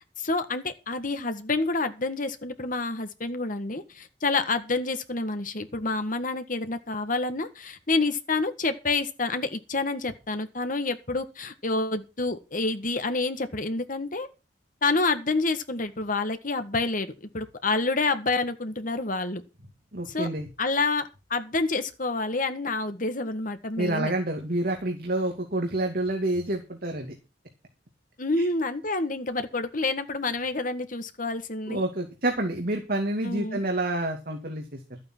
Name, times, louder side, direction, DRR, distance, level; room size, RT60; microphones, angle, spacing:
voice 1, 0.2-14.3 14.8-19.4 20.1-20.3 20.6-24.1 28.2-31.8 33.2-33.6, left 3 dB, 45° left, 9 dB, 1.7 m, -28 dB
voice 2, 19.9-20.5 23.8-27.1 28.4-28.5 31.7-35.0, right 1 dB, 55° right, 3 dB, 2.5 m, -28 dB
13.0 x 8.8 x 6.2 m, 0.29 s
head